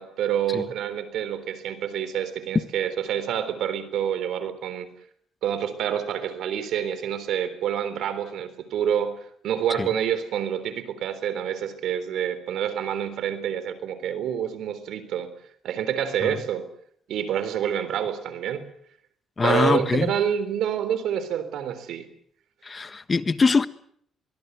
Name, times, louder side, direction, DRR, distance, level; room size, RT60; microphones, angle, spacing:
voice 1, 0.0-4.9 5.4-15.3 15.6-16.7 17.1-18.7 19.4-22.1, right 9 dB, 80° right, 3.7 m, -27 dB
voice 2, 19.4-20.1 22.6-23.7, left 4 dB, 30° left, 1.4 m, -22 dB
23.0 x 22.0 x 8.2 m
cardioid pair, 90°, 0 cm